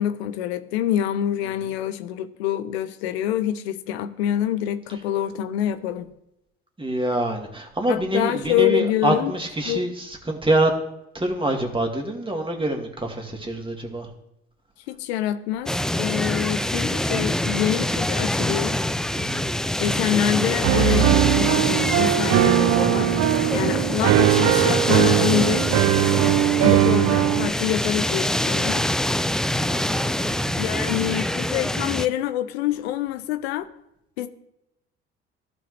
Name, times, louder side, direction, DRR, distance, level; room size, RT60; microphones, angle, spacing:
voice 1, 0.0-6.1 7.9-9.3 9.7-9.8 14.9-18.8 19.8-23.2 23.5-25.7 26.6-28.9 30.6-33.7 34.2-34.3, left 11 dB, 80° left, 11 dB, 0.7 m, -26 dB
voice 2, 6.8-10.7 11.1-14.1 19.1-19.5 23.4-23.7 29.7-30.9, right 1 dB, 15° right, 2 dB, 2.2 m, -26 dB
sound 1, 15.7-32.1, left 1 dB, ahead, 0.3 m, -25 dB
Piano, 20.6-27.5, right 14 dB, 60° right, 0.7 m, -20 dB
15.0 x 5.3 x 3.3 m, 0.84 s
hypercardioid pair, 55°, 31 cm